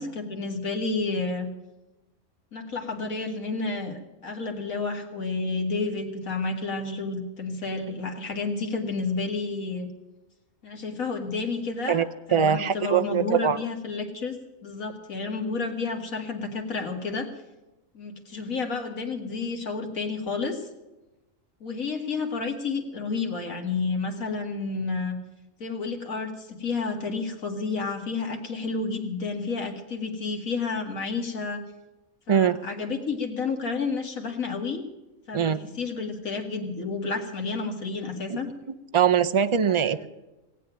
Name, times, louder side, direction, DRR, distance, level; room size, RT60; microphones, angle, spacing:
voice 1, 0.0-1.5 2.5-9.9 10.6-17.3 17.9-20.7 21.6-25.2 25.6-31.6 32.3-34.8 35.3-38.5 39.7-40.1, left 4 dB, 90° left, 3 dB, 2.4 m, -30 dB
voice 2, 11.9-13.6 32.3-32.6 35.3-35.6 38.3-38.4 38.9-40.1, right 8 dB, 45° right, 9 dB, 0.4 m, -22 dB
18.0 x 8.4 x 9.0 m, 1.0 s
omnidirectional pair, 1.4 m